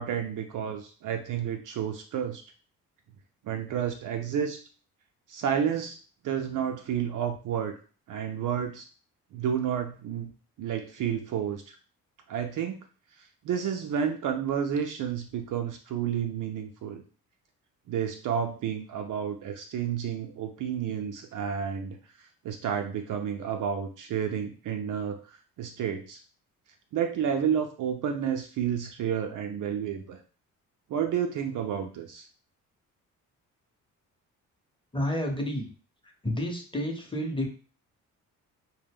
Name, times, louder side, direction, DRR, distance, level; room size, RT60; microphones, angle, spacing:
voice 1, 0.0-2.4 3.4-4.6 5.3-6.0 6.2-7.7 8.1-8.9 9.3-10.3 10.6-11.8 12.3-12.8 13.4-17.0 17.9-22.0 22.4-26.2 26.9-30.2 30.9-32.2, right 8 dB, 50° right, 4 dB, 0.5 m, -30 dB
voice 2, 34.9-35.7 36.2-37.5, left 1 dB, 10° left, 2 dB, 0.8 m, -30 dB
2.1 x 2.1 x 3.5 m, 0.38 s
hypercardioid pair, 45°, 43 cm